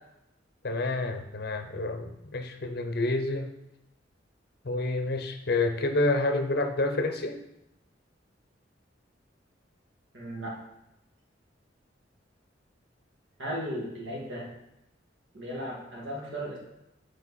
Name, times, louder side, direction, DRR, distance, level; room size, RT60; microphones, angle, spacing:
voice 1, 0.6-3.5 4.6-7.4, left 2 dB, 55° left, 6 dB, 0.7 m, -28 dB
voice 2, 10.1-10.6 13.4-14.5 15.3-16.6, equal, 75° right, -3 dB, 2.1 m, -36 dB
7.3 x 4.6 x 4.2 m, 0.86 s
head